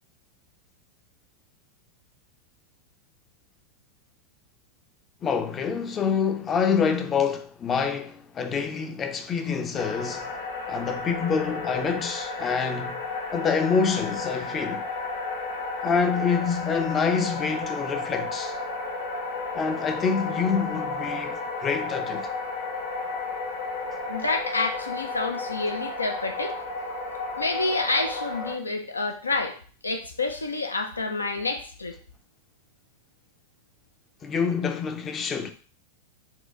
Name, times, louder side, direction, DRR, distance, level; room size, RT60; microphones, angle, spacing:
voice 1, 5.2-10.3 10.7-13.0 13.3-14.9 15.8-18.5 19.5-22.3 34.2-35.5, left 6 dB, 25° left, 0.5 m, -26 dB
sound 1, 9.7-28.6, left 3 dB, 55° left, 0.9 m, -33 dB
voice 2, 24.1-26.6 27.4-29.6 29.8-32.0, left 3 dB, 80° left, 0.5 m, -28 dB
4.4 x 2.3 x 3.7 m
figure-of-eight pair, 90°, 0 cm